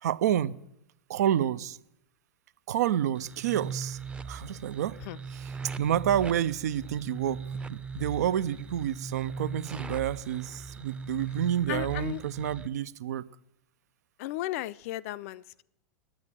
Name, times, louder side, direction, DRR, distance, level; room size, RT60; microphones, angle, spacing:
voice 1, 0.0-0.5 1.1-1.8 2.7-4.0 4.3-5.0 5.3-7.4 7.7-13.3, right 10 dB, 65° right, 0.5 m, -29 dB
sound 1, 3.1-12.7, right 5 dB, 10° right, 0.6 m, -39 dB
voice 2, 11.7-12.2 14.2-15.6, left 16 dB, 50° left, 0.5 m, -35 dB
9.5 x 8.8 x 9.9 m
figure-of-eight pair, 95°, 10 cm